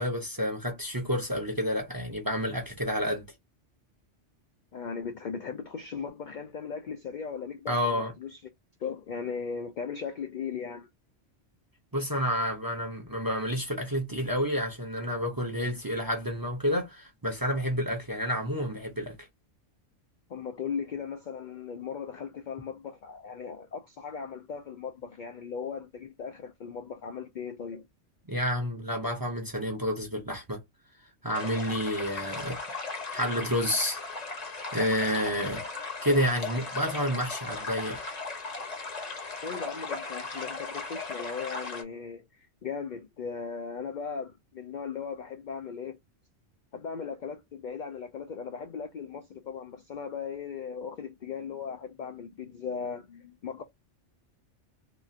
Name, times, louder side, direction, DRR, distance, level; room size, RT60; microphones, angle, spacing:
voice 1, 0.0-3.3 7.7-8.1 11.9-19.3 28.3-30.6 31.2-32.6 33.1-34.0 34.7-35.7 36.0-38.0, equal, 25° right, 0.6 m, -29 dB
voice 2, 4.7-8.4 8.8-10.9 20.3-27.8 39.4-46.0 46.7-53.6, left 6 dB, 60° left, 0.5 m, -38 dB
sound 1, 31.3-41.8, left 3 dB, 40° left, 0.9 m, -37 dB
2.9 x 2.4 x 2.5 m
omnidirectional pair, 1.2 m